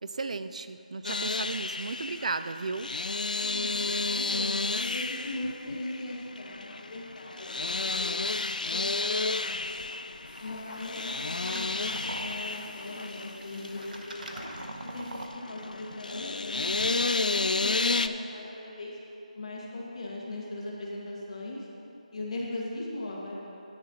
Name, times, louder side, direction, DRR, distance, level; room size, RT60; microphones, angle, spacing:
voice 1, 0.0-2.9, right 4 dB, 60° right, 11 dB, 0.4 m, -34 dB
sound 1, 1.0-18.1, left 3 dB, 80° left, 0.4 m, -32 dB
voice 2, 3.4-9.8 10.4-14.4 14.9-18.9 19.4-21.7 22.1-23.4, left 2 dB, 50° left, -4 dB, 2.1 m, -39 dB
sound 2, 10.3-15.3, right 1 dB, 85° right, 1.0 m, -43 dB
11.0 x 9.7 x 3.1 m, 3.0 s
figure-of-eight pair, 160°, 4 cm